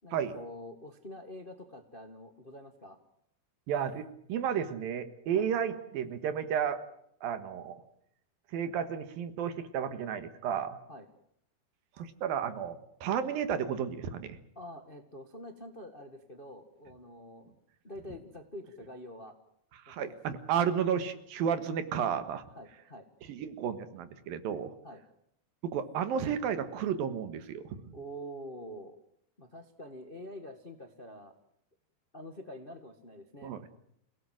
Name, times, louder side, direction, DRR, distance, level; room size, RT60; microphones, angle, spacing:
voice 1, 0.0-3.0 5.3-5.5 10.9-11.1 14.5-17.5 17.8-19.3 19.9-20.1 22.6-23.1 24.8-25.0 27.9-29.0 29.4-31.3 32.1-33.6, equal, 40° left, 6 dB, 0.8 m, -46 dB
voice 2, 3.7-6.8 7.2-7.8 8.5-10.8 12.0-14.4 19.9-22.4 23.3-24.7 25.6-27.8 33.4-33.6, right 8 dB, 75° right, 11 dB, 3.2 m, -32 dB
28.0 x 17.5 x 7.7 m, 0.72 s
omnidirectional pair, 4.3 m